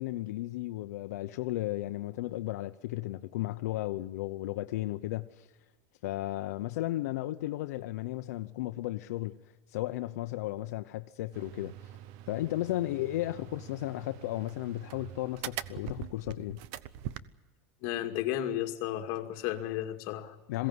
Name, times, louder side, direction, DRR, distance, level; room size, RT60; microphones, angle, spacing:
voice 1, 0.0-5.5 6.0-9.4 9.7-11.9 12.3-16.6 20.5-20.7, left 16 dB, 85° left, 0.8 m, -34 dB
sound 1, 11.3-17.2, right 12 dB, 55° right, 0.8 m, -43 dB
voice 2, 17.8-20.4, left 12 dB, 50° left, 2.3 m, -33 dB
22.0 x 16.5 x 9.6 m
supercardioid pair, 165°, 8 cm